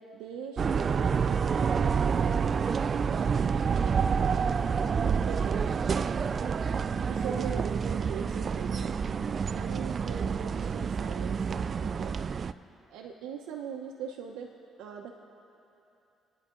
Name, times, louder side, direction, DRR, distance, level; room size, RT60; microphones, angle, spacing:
voice 1, 0.0-2.6 3.0-5.9 7.1-8.9 9.5-12.1 12.9-14.5 14.8-15.2, right 7 dB, 90° right, 0 dB, 1.0 m, -42 dB
sound 1, 0.6-12.5, right 6 dB, 45° right, 0.4 m, -28 dB
29.5 x 10.0 x 3.9 m, 2.9 s
cardioid pair, 90°, 0 cm